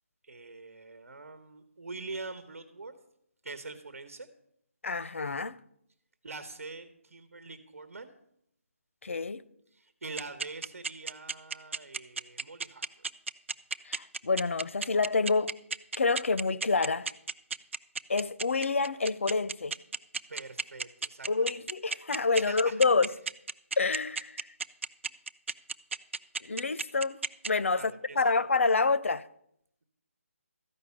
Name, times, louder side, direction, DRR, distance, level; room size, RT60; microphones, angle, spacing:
voice 1, 0.2-2.9 3.4-4.3 6.2-8.1 9.7-12.9 20.3-21.7 22.3-23.1 27.7-28.5, right 3 dB, 85° right, 1.2 m, -44 dB
voice 2, 4.8-5.6 9.0-9.4 13.9-15.5 15.9-17.1 18.1-19.7 21.3-23.1 23.8-24.4 26.4-27.2 27.5-29.3, left 4 dB, 65° left, 0.6 m, -28 dB
sound 1, 10.2-27.5, right 4 dB, 60° right, 0.5 m, -32 dB
13.5 x 5.5 x 8.3 m
hypercardioid pair, 180°, 8 cm